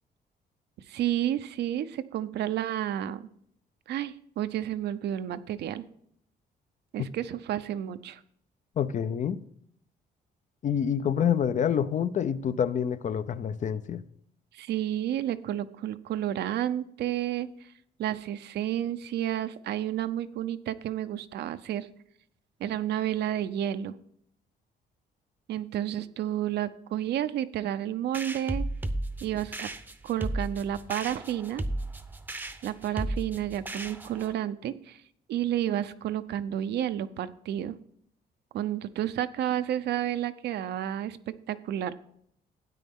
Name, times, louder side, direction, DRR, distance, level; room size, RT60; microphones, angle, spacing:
voice 1, 0.9-3.2 3.9-5.8 6.9-8.2 14.5-17.5 18.0-21.9 22.6-24.0 25.5-28.7 29.2-29.7 30.0-31.6 32.6-35.0 35.3-37.8 38.5-41.9, right 11 dB, 75° right, 0.6 m, -31 dB
voice 2, 8.8-9.4 10.6-14.0, left 8 dB, 45° left, 0.5 m, -27 dB
sound 1, 28.1-34.3, right 1 dB, 10° right, 0.7 m, -34 dB
13.0 x 9.0 x 3.6 m
cardioid pair, 130°, 17 cm